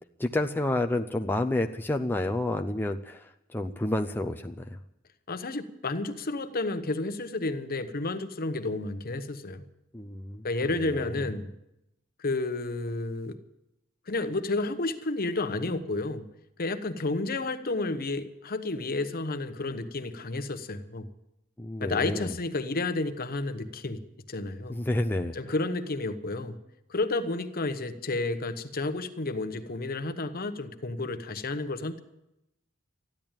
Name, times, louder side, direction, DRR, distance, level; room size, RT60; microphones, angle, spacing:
voice 1, 0.2-4.8 9.9-10.4 10.8-11.3 21.6-22.3 24.7-25.5, left 1 dB, 10° left, 4 dB, 0.5 m, -30 dB
voice 2, 5.3-9.6 10.4-11.5 12.2-13.4 14.1-16.2 16.6-21.1 21.8-24.0 24.3-24.8 25.3-26.6 26.9-32.0, left 2 dB, 45° left, 9 dB, 1.0 m, -31 dB
14.5 x 10.5 x 8.9 m, 0.88 s
head